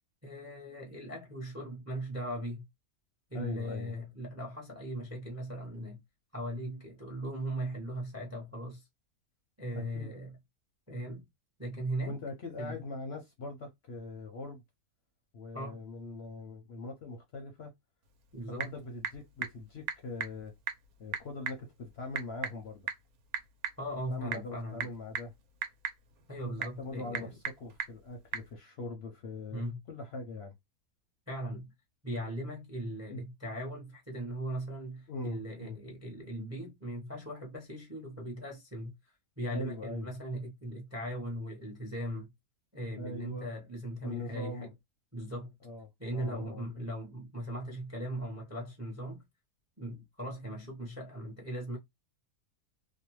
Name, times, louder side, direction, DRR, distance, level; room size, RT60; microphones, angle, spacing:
voice 1, 0.2-2.6 3.3-6.0 6.3-8.9 9.6-10.4 10.9-11.2 11.6-12.2 12.6-12.7 15.5-15.8 18.3-18.7 23.8-24.9 26.3-27.3 29.5-29.8 31.3-31.7 32.0-39.0 39.4-42.3 42.7-44.7 45.1-45.5 46.0-49.2 49.8-51.8, right 1 dB, 15° right, 0.5 m, -39 dB
voice 2, 3.3-3.9 9.7-10.1 12.1-14.6 15.3-17.7 18.5-20.5 21.0-22.9 24.1-25.3 26.4-30.5 33.1-33.2 35.1-35.8 39.5-40.1 43.0-43.5 44.0-44.7 45.6-46.6, left 2 dB, 60° left, 0.7 m, -42 dB
Typing / Telephone, 18.0-28.5, right 8 dB, 80° right, 1.1 m, -41 dB
2.6 x 2.2 x 2.9 m
omnidirectional pair, 1.6 m